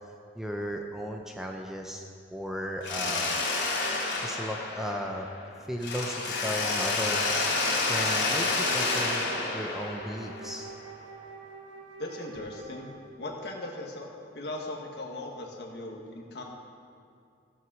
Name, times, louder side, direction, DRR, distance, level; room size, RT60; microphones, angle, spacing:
voice 1, 0.4-2.0 2.3-3.4 3.8-3.9 4.2-5.3 5.7-7.3 7.9-9.3 9.5-10.7, equal, ahead, 1 dB, 0.6 m, -35 dB
Mechanisms, 2.8-5.4 5.8-10.7, left 3 dB, 80° left, 2.4 m, -29 dB
Wind instrument woodwind instrument, 8.2-13.4, right 3 dB, 85° right, 1.9 m, -46 dB
voice 2, 12.0-12.9 13.2-14.1 14.3-16.4, left 1 dB, 60° left, 0 dB, 1.6 m, -38 dB
15.0 x 6.1 x 6.2 m, 2.4 s
head